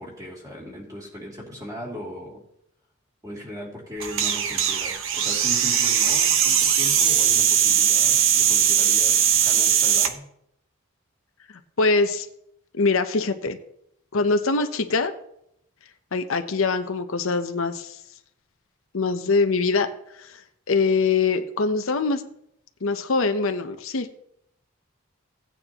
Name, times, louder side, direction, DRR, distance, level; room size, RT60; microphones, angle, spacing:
voice 1, 0.0-2.4 3.2-10.3, equal, 15° right, -3 dB, 2.7 m, -38 dB
sound 1, 4.0-10.1, right 8 dB, 65° right, 0.8 m, -20 dB
voice 2, 11.8-12.3 12.8-13.6 14.1-15.1 16.1-18.0 18.9-19.9 20.2-20.3 20.7-22.2 22.8-24.1, left 4 dB, 70° left, 7 dB, 0.8 m, -23 dB
16.5 x 9.0 x 2.9 m, 0.76 s
head